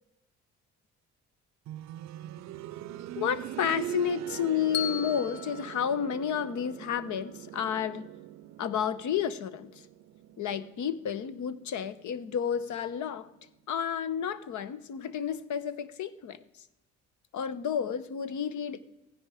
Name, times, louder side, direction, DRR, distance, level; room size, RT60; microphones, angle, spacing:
sound 1, 1.7-12.4 13.8-13.9, right 13 dB, 65° right, 0.5 m, -42 dB
voice 1, 3.2-8.1 8.6-9.8 10.4-13.3 13.7-16.4 17.3-18.8, left 8 dB, 75° left, 15 dB, 0.9 m, -31 dB
Bell, 4.7-6.9, left 10 dB, 35° left, 1.0 m, -38 dB
15.0 x 10.5 x 4.9 m, 0.95 s
cardioid pair, 90°, 30 cm